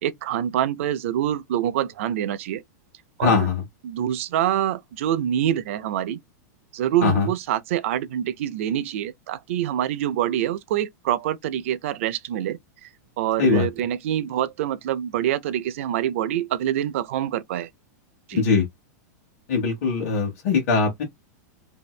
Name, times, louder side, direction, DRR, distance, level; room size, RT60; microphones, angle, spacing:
voice 1, 0.0-2.6 3.2-3.4 3.8-6.2 6.7-12.9 13.2-17.7 18.3-18.4, right 11 dB, 45° right, 0.4 m, -25 dB
voice 2, 3.2-3.6 7.0-7.3 13.4-13.7 18.3-18.6 19.5-21.0, left 5 dB, 50° left, 1.1 m, -21 dB
2.6 x 2.5 x 3.1 m
supercardioid pair, 180°, 9 cm